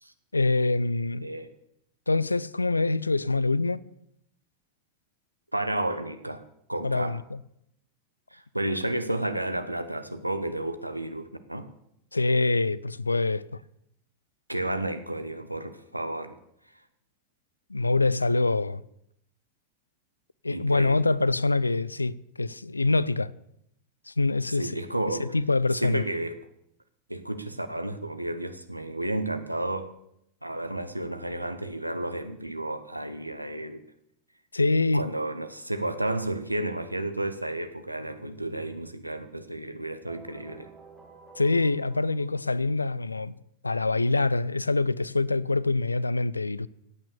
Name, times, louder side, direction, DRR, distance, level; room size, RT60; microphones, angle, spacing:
voice 1, 0.3-1.3 2.1-3.8 6.8-7.4 12.1-13.5 17.7-18.8 20.4-23.3 24.1-24.7 25.2-26.0 34.5-35.0 41.4-43.3 43.6-46.7, left 3 dB, 80° left, 0.4 m, -25 dB
voice 2, 1.2-1.5 5.5-6.4 6.7-7.2 8.3-11.7 14.5-16.4 20.5-21.1 24.5-25.3 25.8-26.4 27.1-29.9 30.4-33.8 34.9-40.7, right 1 dB, 85° right, 1.1 m, -32 dB
sound 1, 40.1-42.9, right 4 dB, 5° right, 3.6 m, -51 dB
15.5 x 8.9 x 6.8 m
figure-of-eight pair, 90°, 0 cm